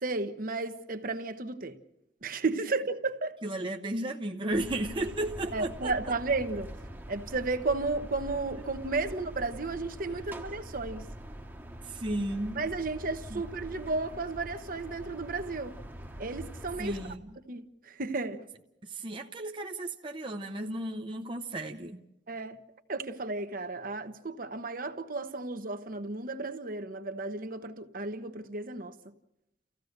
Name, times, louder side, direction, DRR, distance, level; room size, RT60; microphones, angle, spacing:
voice 1, 0.0-1.8 2.2-3.4 5.5-6.7 7.1-11.1 12.5-15.7 16.2-17.1 17.5-18.4 22.3-22.6 22.9-29.1, right 3 dB, 50° right, 1.1 m, -33 dB
voice 2, 3.4-5.9 9.0-9.2 10.1-10.2 11.8-12.6 13.3-13.4 16.8-17.3 18.8-22.0, right 1 dB, 30° right, 0.8 m, -34 dB
sound 1, 4.5-17.2, right 1 dB, 10° right, 1.1 m, -44 dB
30.0 x 15.5 x 6.5 m
head